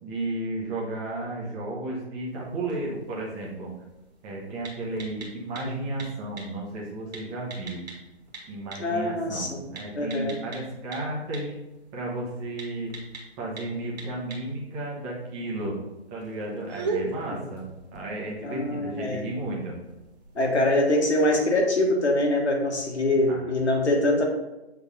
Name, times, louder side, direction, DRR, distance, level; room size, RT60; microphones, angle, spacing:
voice 1, 0.0-3.7 4.2-7.8 8.5-11.5 11.9-12.9 13.4-15.8 16.1-17.6 17.9-19.8 23.3-23.7, right 2 dB, 15° right, -4 dB, 1.0 m, -33 dB
sound 1, 2.3-20.5, right 3 dB, 40° right, 1.5 m, -42 dB
voice 2, 8.8-9.6 9.9-10.4 18.4-19.3 20.3-24.2, left 1 dB, 85° left, 1 dB, 1.7 m, -24 dB
7.3 x 3.5 x 4.2 m, 0.99 s
hypercardioid pair, 155°, 33 cm